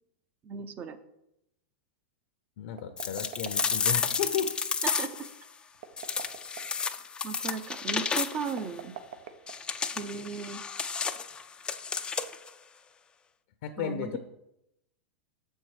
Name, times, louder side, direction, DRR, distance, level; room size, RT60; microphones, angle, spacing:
voice 1, 0.4-1.0 5.0-5.1 7.2-8.9 10.0-10.6 13.8-14.2, right 5 dB, 30° right, 10 dB, 0.7 m, -36 dB
voice 2, 2.6-4.5 13.6-14.2, left 8 dB, 65° left, 7 dB, 0.7 m, -33 dB
sound 1, 2.7-4.2 5.7-6.9 8.5-10.0, right 8 dB, 70° right, 0.8 m, -44 dB
sound 2, 3.0-5.3 6.0-8.6 9.5-12.5, left 5 dB, 15° left, 0.4 m, -32 dB
6.8 x 4.5 x 4.8 m, 0.84 s
hypercardioid pair, 125°, 6 cm